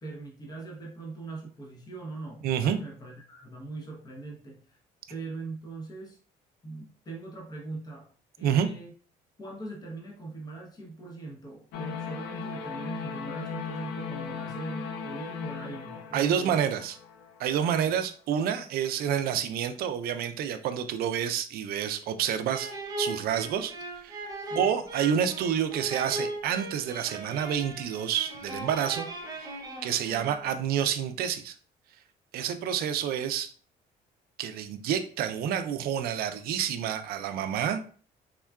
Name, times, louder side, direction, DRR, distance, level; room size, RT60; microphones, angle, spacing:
voice 1, 0.0-4.8 5.1-6.2 6.6-8.1 8.4-8.9 9.4-16.7 24.4-24.7, right 3 dB, 25° left, -1 dB, 0.7 m, -41 dB
voice 2, 2.4-2.8 8.4-8.7 16.1-16.9 17.4-22.7 23.0-23.7 24.0-24.2 24.6-29.5 29.8-31.5 32.3-33.5 34.4-37.8, right 9 dB, 65° right, 9 dB, 0.4 m, -28 dB
sound 1, 11.7-17.8, left 6 dB, 90° left, 0.4 m, -38 dB
sound 2, 22.5-30.6, right 2 dB, 20° right, 0.6 m, -38 dB
3.6 x 2.2 x 2.2 m, 0.43 s
cardioid pair, 110°, 17 cm